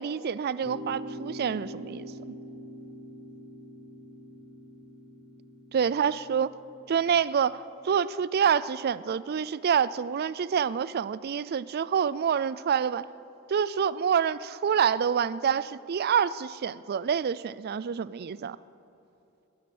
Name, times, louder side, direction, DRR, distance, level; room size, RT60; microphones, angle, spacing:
voice 1, 0.0-2.1 5.7-6.5 6.9-13.1 13.5-18.6, right 7 dB, 50° right, 18 dB, 0.4 m, -27 dB
sound 1, 0.6-7.0, equal, 80° left, 3.0 m, -43 dB
21.0 x 9.6 x 6.1 m, 2.8 s
head